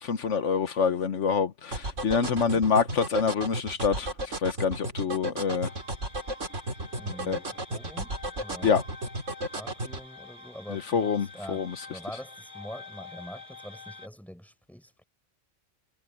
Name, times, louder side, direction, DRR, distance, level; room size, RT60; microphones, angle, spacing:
voice 1, 0.0-5.7 7.3-7.4 8.6-8.8 10.7-11.7, left 6 dB, 75° left, 1.4 m, -26 dB
sound 1, 1.7-10.0, right 1 dB, 90° right, 3.9 m, -33 dB
voice 2, 2.2-2.6 7.0-8.1 8.4-8.7 9.5-15.0, equal, ahead, 4.5 m, -44 dB
sound 2, 5.6-14.1, left 3 dB, 40° left, 3.9 m, -47 dB
omnidirectional pair, 1.2 m